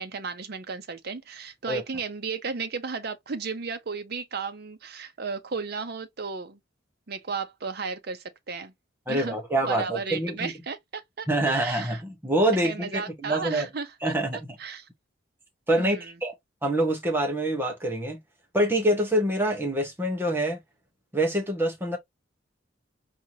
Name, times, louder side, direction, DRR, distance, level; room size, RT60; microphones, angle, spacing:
voice 1, 0.0-6.6 7.1-8.7 9.1-9.4 9.7-12.0 12.6-14.1 14.6-14.9 15.8-16.1, right 5 dB, 55° right, 0.7 m, -34 dB
voice 2, 9.1-10.5 11.3-13.7 14.0-14.6 15.7-16.3 16.6-18.2 18.5-20.6 21.1-22.0, right 1 dB, 10° right, 1.0 m, -26 dB
4.5 x 2.8 x 2.7 m
head